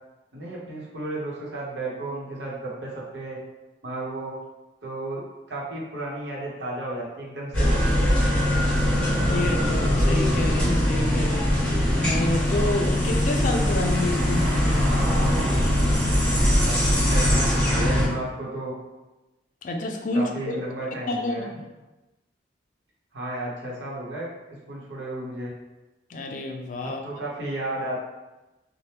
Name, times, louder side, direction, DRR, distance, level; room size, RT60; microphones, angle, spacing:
voice 1, 0.3-3.4 3.8-4.3 4.8-5.2 5.5-7.8 16.2-18.7 20.1-21.5 23.1-25.5 26.8-28.0, right 1 dB, 85° right, -5 dB, 0.9 m, -33 dB
sound 1, 7.5-18.1, left 1 dB, 5° left, 1.0 m, -21 dB
voice 2, 9.0-15.4 19.6-20.6 21.1-21.5 26.1-27.0, left 2 dB, 45° left, 3 dB, 0.3 m, -29 dB
2.8 x 2.1 x 3.3 m, 1.1 s
head